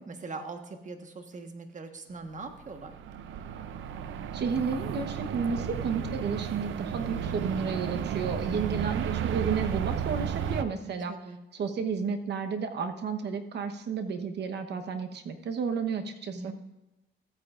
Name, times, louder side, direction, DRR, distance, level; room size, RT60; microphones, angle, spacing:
voice 1, 0.0-2.9 8.4-8.9 10.8-11.4 16.3-16.5, right 3 dB, 40° right, 6 dB, 1.3 m, -41 dB
sound 1, 2.4-10.6, right 8 dB, 75° right, 0.6 m, -33 dB
voice 2, 4.3-11.1 11.5-16.5, right 5 dB, 60° right, 7 dB, 1.0 m, -32 dB
14.5 x 8.8 x 2.5 m, 0.99 s
cardioid pair, 90°, 20 cm